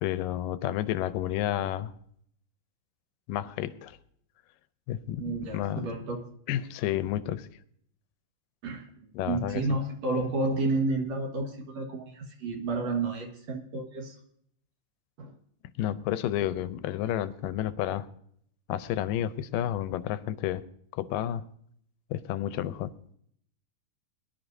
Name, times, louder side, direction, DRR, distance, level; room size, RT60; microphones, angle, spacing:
voice 1, 0.0-1.9 3.3-4.0 4.9-5.9 6.5-7.5 9.2-9.6 15.8-18.1 18.7-20.6 20.9-21.4 22.1-22.9, left 12 dB, 85° left, 13 dB, 2.3 m, -31 dB
voice 2, 5.2-6.2 8.6-14.2 15.2-15.3, right 3 dB, 55° right, 2 dB, 2.4 m, -31 dB
22.0 x 11.0 x 2.7 m, 0.65 s
omnidirectional pair, 3.9 m